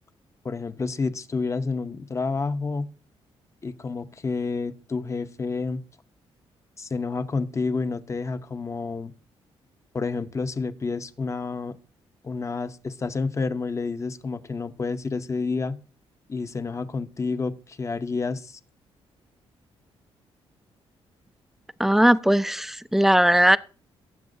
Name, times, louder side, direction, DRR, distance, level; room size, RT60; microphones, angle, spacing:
voice 1, 0.4-2.9 3.6-5.8 6.8-9.1 9.9-11.8 12.2-15.8 16.3-18.6, left 4 dB, 30° left, 0.8 m, -29 dB
voice 2, 21.8-23.6, right 1 dB, 5° right, 0.5 m, -19 dB
18.5 x 7.5 x 2.6 m
cardioid pair, 90°, 10 cm